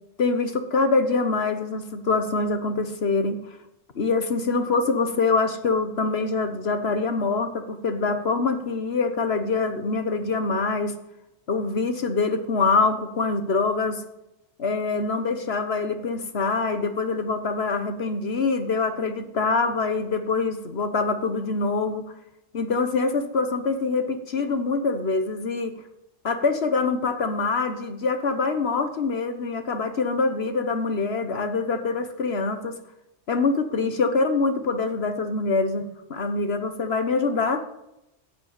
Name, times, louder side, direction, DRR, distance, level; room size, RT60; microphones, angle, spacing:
voice 1, 0.2-3.4 3.9-10.9 11.5-14.0 14.6-22.0 22.5-25.7 26.2-32.7 33.3-37.6, left 4 dB, 65° left, 8 dB, 1.6 m, -24 dB
15.0 x 8.7 x 8.3 m, 0.90 s
omnidirectional pair, 1.1 m